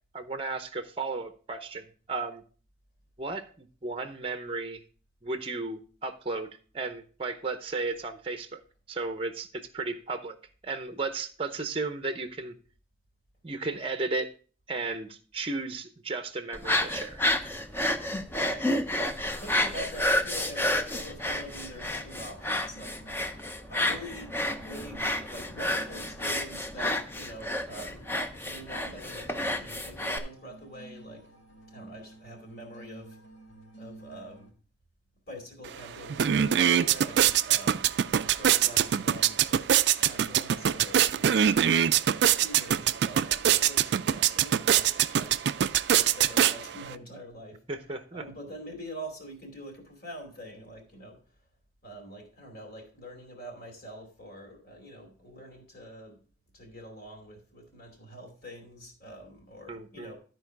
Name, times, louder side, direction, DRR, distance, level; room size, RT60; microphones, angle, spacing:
voice 1, 0.1-2.4 3.2-4.8 5.2-6.5 6.7-8.6 8.9-10.4 10.6-12.6 13.4-14.3 14.7-17.2 47.7-48.2 59.7-60.1, right 3 dB, 25° right, 8 dB, 0.7 m, -34 dB
sound 1, 16.5-30.2, left 1 dB, 10° left, 0.6 m, -30 dB
sound 2, 18.5-34.5, right 2 dB, 80° left, 2.4 m, -52 dB
voice 2, 19.3-22.9 23.7-24.3 24.6-28.1 28.4-31.2 31.7-33.2 33.8-34.5 35.3-37.9 38.2-39.7 40.0-41.4 42.3-45.5 46.0-47.6 48.1-51.2 51.8-56.2 56.5-60.2, equal, 50° left, 2 dB, 2.6 m, -45 dB
sound 3, 35.6-35.7 36.0-46.9, right 10 dB, 55° right, 0.3 m, -24 dB
12.5 x 4.6 x 4.6 m, 0.40 s
head